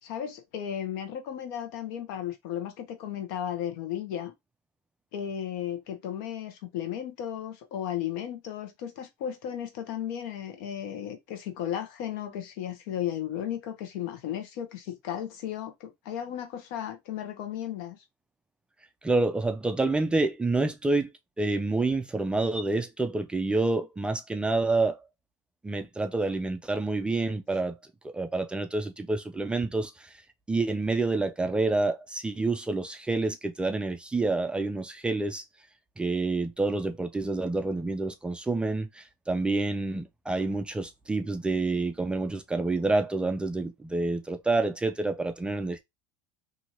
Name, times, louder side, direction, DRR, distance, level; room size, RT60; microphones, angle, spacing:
voice 1, 0.0-4.3 5.1-18.0, left 10 dB, 75° left, 0.9 m, -35 dB
voice 2, 19.0-21.1 21.4-25.0 25.6-27.8 28.1-30.1 30.5-35.4 36.0-45.8, right 3 dB, 10° right, 0.3 m, -28 dB
2.7 x 2.6 x 2.9 m
supercardioid pair, 130°, 11 cm